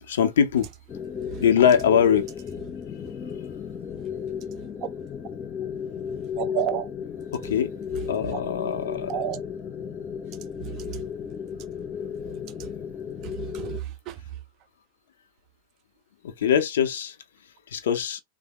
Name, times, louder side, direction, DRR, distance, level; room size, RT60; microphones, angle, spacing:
voice 1, 0.0-0.7 1.4-2.3 7.3-7.7 8.1-9.1 16.2-17.2 17.7-18.2, left 8 dB, 60° left, 0.7 m, -22 dB
sound 1, 0.9-13.8, left 7 dB, 25° left, 0.5 m, -34 dB
voice 2, 4.6-4.9 6.3-6.9 8.3-8.4 9.1-9.4 10.3-11.0 12.3-12.7 13.2-14.4, right 11 dB, 40° right, 0.3 m, -33 dB
3.5 x 2.0 x 3.0 m
figure-of-eight pair, 90°, 0 cm